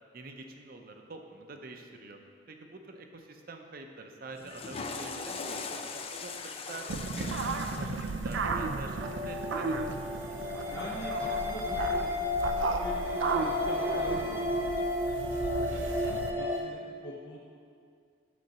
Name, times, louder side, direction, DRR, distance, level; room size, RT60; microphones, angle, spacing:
voice 1, 0.1-2.2 2.5-5.8 6.2-6.9 7.2-9.9 11.2-11.4 15.7-16.2, right 3 dB, 50° right, 4 dB, 0.6 m, -47 dB
Water / Toilet flush, 4.3-10.6, left 4 dB, 30° left, 0.4 m, -41 dB
sound 1, 6.9-16.3, right 4 dB, 90° right, 0.5 m, -35 dB
sound 2, 9.0-16.6, left 2 dB, 15° right, 0.7 m, -32 dB
voice 2, 10.7-14.6 14.9-15.8 16.3-17.5, left 1 dB, 70° left, -5 dB, 0.8 m, -44 dB
8.4 x 3.9 x 6.6 m, 2.3 s
head